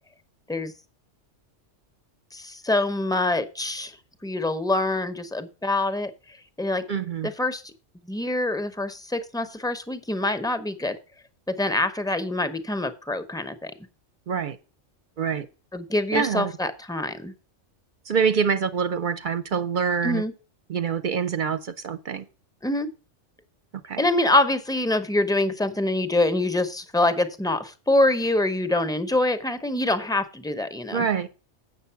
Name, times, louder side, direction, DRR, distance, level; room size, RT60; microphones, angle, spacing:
voice 1, 2.3-4.0 4.2-6.1 6.6-6.9 7.2-7.6 8.1-11.0 11.5-13.7 15.7-17.3 20.0-20.3 22.6-22.9 24.0-31.1, left 2 dB, 5° left, 10 dB, 0.5 m, -25 dB
voice 2, 6.9-7.3 14.3-14.6 15.2-15.5 16.1-16.5 18.1-20.2 20.7-22.2 23.8-24.0 30.9-31.3, right 6 dB, 55° right, 12 dB, 0.6 m, -25 dB
8.2 x 6.6 x 5.6 m, 0.34 s
omnidirectional pair, 1.2 m